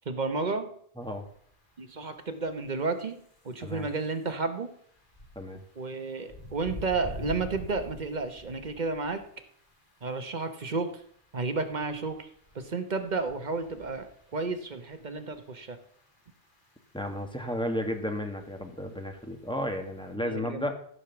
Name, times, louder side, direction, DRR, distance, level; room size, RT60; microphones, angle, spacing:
voice 1, 0.1-0.7 1.8-3.2 3.4-4.7 5.8-9.2 10.0-11.0 11.3-12.3 12.5-15.8 20.2-20.7, right 3 dB, 45° right, 8 dB, 1.1 m, -32 dB
sound 1, 1.0-20.1, left 1 dB, 50° left, 2.4 m, -49 dB
voice 2, 16.9-20.7, left 1 dB, 5° left, 4 dB, 1.4 m, -33 dB
14.5 x 4.8 x 7.0 m, 0.64 s
omnidirectional pair, 1.1 m